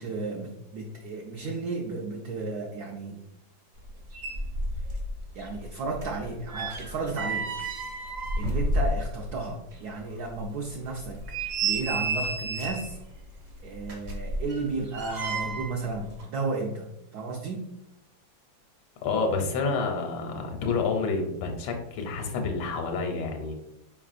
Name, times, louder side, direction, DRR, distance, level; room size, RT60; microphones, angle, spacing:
voice 1, 0.0-3.2 4.8-5.0 5.3-7.5 8.4-13.0 13.6-17.6, right 3 dB, 70° right, 0 dB, 0.9 m, -33 dB
sound 1, 3.9-4.0 4.1-5.1 5.4-9.4 9.7-9.8 10.3-10.4 11.0-13.0 13.8-15.8 16.1-16.2, right 2 dB, 50° right, 1.1 m, -31 dB
voice 2, 19.0-23.5, left 4 dB, 90° left, 3 dB, 1.4 m, -29 dB
4.4 x 3.3 x 2.4 m, 0.84 s
omnidirectional pair, 2.1 m